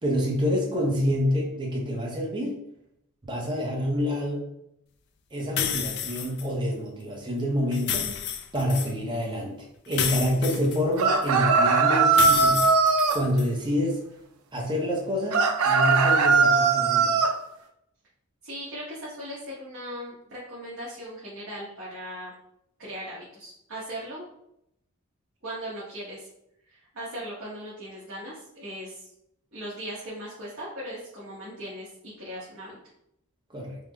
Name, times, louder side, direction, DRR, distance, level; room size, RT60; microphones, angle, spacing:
voice 1, 0.0-2.6 3.2-4.5 5.3-8.1 8.5-9.5 9.9-12.7 13.1-14.0 14.5-17.3 33.5-33.8, equal, 20° right, -1 dB, 0.7 m, -27 dB
sound 1, 5.6-6.5 7.7-8.9 9.9-11.3 12.1-13.5, left 9 dB, 50° left, 0.3 m, -30 dB
sound 2, 11.0-13.2 15.3-17.3, right 4 dB, 90° right, 0.4 m, -20 dB
voice 2, 18.4-22.3 22.8-24.3 25.4-26.3 26.7-29.1 29.5-32.8, equal, 60° right, -9 dB, 1.0 m, -38 dB
3.6 x 2.0 x 3.3 m, 0.78 s
head